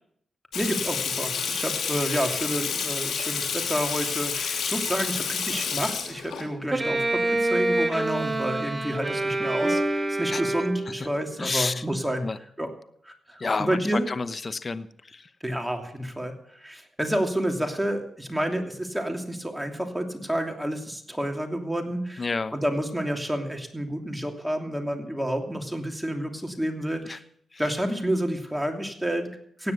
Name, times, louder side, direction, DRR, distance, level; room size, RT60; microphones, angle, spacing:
Water tap faucet / Sink (filling or washing), 0.5-6.4, left 6 dB, 80° left, 3.1 m, -29 dB
voice 1, 0.5-12.2 12.6-12.7 13.0-14.1 15.4-22.3 22.5-27.2 27.6-29.7, right 1 dB, 5° right, 3 dB, 2.9 m, -29 dB
Bowed string instrument, 6.7-11.1, right 2 dB, 25° right, 1.9 m, -26 dB
voice 2, 11.4-11.8 12.2-12.4 13.4-15.3 22.2-22.5 27.0-27.2 27.5-27.6, left 4 dB, 40° left, 13 dB, 0.9 m, -30 dB
17.0 x 9.5 x 6.8 m, 0.69 s
cardioid pair, 60°, 0 cm